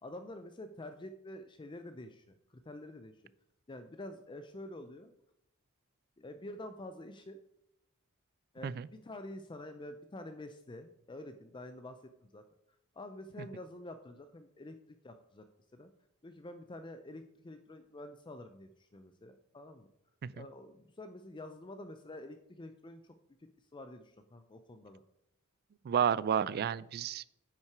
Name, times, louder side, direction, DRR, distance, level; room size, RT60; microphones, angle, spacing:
voice 1, 0.0-3.2 3.7-5.1 6.2-7.4 8.5-12.4 12.9-14.8 15.0-15.4 15.7-15.9 16.2-19.9 20.3-23.1 23.4-25.0, left 1 dB, 20° left, 8 dB, 0.5 m, -48 dB
voice 2, 25.9-27.3, right 8 dB, 45° right, 19 dB, 0.3 m, -31 dB
9.5 x 5.8 x 4.6 m, 0.80 s
head